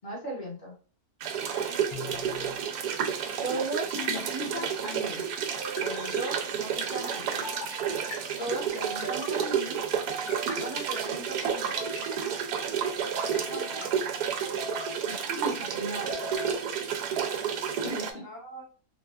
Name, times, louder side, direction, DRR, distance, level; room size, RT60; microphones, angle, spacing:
voice 1, 0.0-0.7 3.4-5.2 5.8-7.4 8.4-9.8 10.5-12.0 15.1-16.1 17.8-18.3, right 1 dB, 40° left, -4 dB, 0.9 m, -37 dB
sound 1, 1.2-18.1, right 7 dB, 90° right, 1.1 m, -31 dB
voice 2, 1.5-2.3 13.3-13.9 17.1-17.8 18.2-18.6, right 1 dB, 25° right, -4 dB, 0.5 m, -44 dB
sound 2, 1.9-2.6 4.0-4.7 5.6-6.3 7.4-8.2 8.8-9.5 10.1-10.9 11.6-12.2 13.0-13.9 14.4-15.0 15.7-16.5, left 1 dB, 75° left, 1.4 m, -40 dB
4.0 x 2.2 x 2.3 m, 0.36 s
omnidirectional pair, 1.6 m